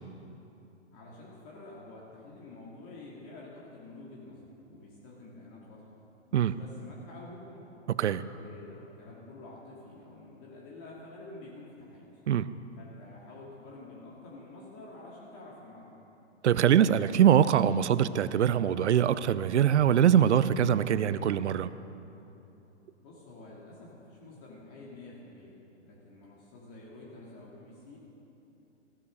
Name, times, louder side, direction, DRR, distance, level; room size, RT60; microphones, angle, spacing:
voice 1, 0.9-5.9 6.3-7.7 8.3-12.2 12.8-16.0 23.0-28.0, left 2 dB, 40° left, -5 dB, 2.7 m, -49 dB
voice 2, 16.4-21.7, right 9 dB, 70° right, 15 dB, 0.6 m, -23 dB
15.5 x 9.8 x 6.5 m, 3.0 s
hypercardioid pair, 120°, 35 cm